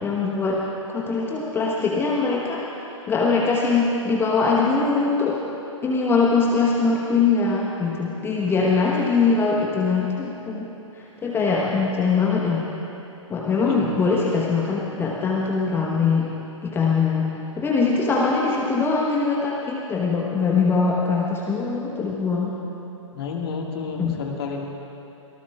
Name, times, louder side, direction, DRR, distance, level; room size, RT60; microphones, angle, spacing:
voice 1, 0.0-2.6 3.1-5.4 5.8-10.7 11.2-12.7 13.3-16.3 16.6-17.3 17.6-22.5 24.0-24.2, left 4 dB, 15° left, -3 dB, 1.1 m, -22 dB
voice 2, 23.1-24.7, left 4 dB, 50° left, 1 dB, 1.8 m, -30 dB
23.5 x 18.5 x 2.4 m, 2.9 s
figure-of-eight pair, 110°, 17 cm